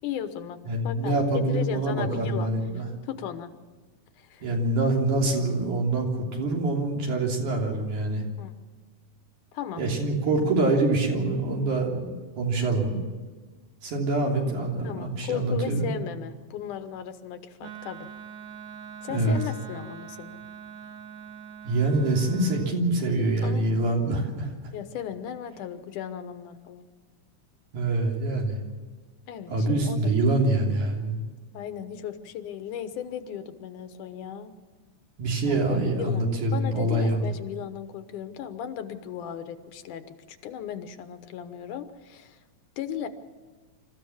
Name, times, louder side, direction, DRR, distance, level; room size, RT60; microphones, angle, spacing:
voice 1, 0.0-0.6 0.8-1.2 1.5-2.5 3.0-3.5 4.2-4.4 8.4-8.5 9.5-9.8 14.8-18.1 19.0-20.4 23.4-23.8 24.7-26.9 29.3-30.2 31.5-34.5 35.5-35.6 36.0-42.4 42.8-43.1, left 9 dB, 80° left, 9 dB, 2.6 m, -36 dB
voice 2, 0.6-2.9 4.4-8.2 9.8-13.0 13.8-15.9 19.1-19.4 21.6-24.5 27.7-28.6 29.5-31.2 35.2-37.3, right 2 dB, 70° right, 0 dB, 4.6 m, -25 dB
Wind instrument woodwind instrument, 17.6-22.8, right 8 dB, 30° right, 1.8 m, -43 dB
26.5 x 14.5 x 7.2 m, 1.4 s
omnidirectional pair, 3.6 m